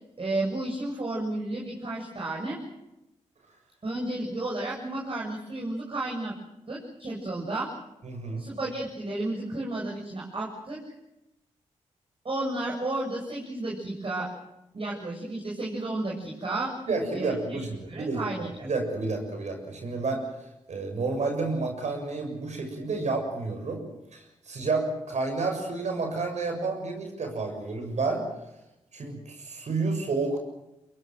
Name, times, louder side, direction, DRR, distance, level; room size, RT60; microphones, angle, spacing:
voice 1, 0.2-2.6 3.8-6.4 6.7-7.7 8.4-10.8 12.2-14.3 14.7-16.7 17.1-18.5, right 2 dB, 45° right, -4 dB, 7.4 m, -32 dB
voice 2, 8.0-8.4 16.9-20.2 20.7-23.8 24.1-28.2 28.9-30.4, right 3 dB, 65° right, 4 dB, 6.9 m, -30 dB
23.5 x 21.5 x 7.8 m, 0.91 s
supercardioid pair, 45°, 13 cm